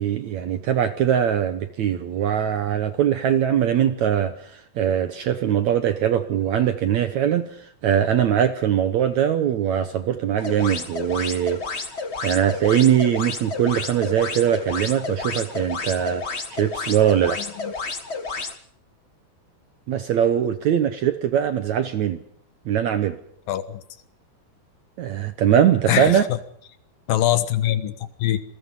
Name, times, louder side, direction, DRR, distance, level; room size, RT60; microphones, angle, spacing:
voice 1, 0.0-11.6 12.2-17.4 19.9-22.2 22.7-23.2 25.0-26.2, right 9 dB, 65° right, 10 dB, 1.9 m, -21 dB
sound 1, 10.4-18.6, left 4 dB, 55° left, 0.7 m, -31 dB
voice 2, 17.4-17.7 23.5-23.8 25.9-26.4 27.1-28.4, left 13 dB, 70° left, 12 dB, 2.9 m, -23 dB
27.5 x 21.0 x 5.5 m, 0.68 s
omnidirectional pair, 4.4 m